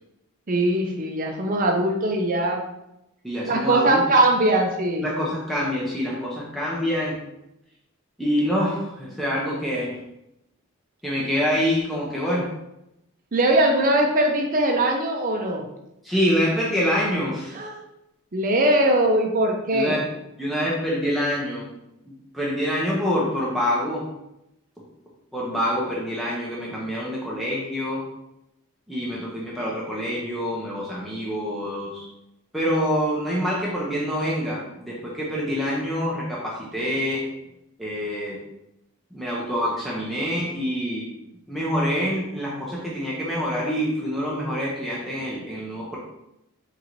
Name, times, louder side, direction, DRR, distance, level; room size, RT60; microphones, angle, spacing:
voice 1, 0.5-2.6 3.5-5.1 13.3-15.6 17.5-17.8 18.3-20.0, right 1 dB, 35° right, 2 dB, 0.5 m, -21 dB
voice 2, 3.2-4.0 5.0-7.2 8.2-10.0 11.0-12.5 16.0-17.5 19.7-20.1 20.4-21.6 22.1-24.1 25.3-28.0 28.9-32.1 32.5-37.2 37.8-38.4 39.1-41.1 41.5-46.0, equal, ahead, -6 dB, 0.7 m, -26 dB
3.8 x 2.7 x 4.4 m, 0.87 s
head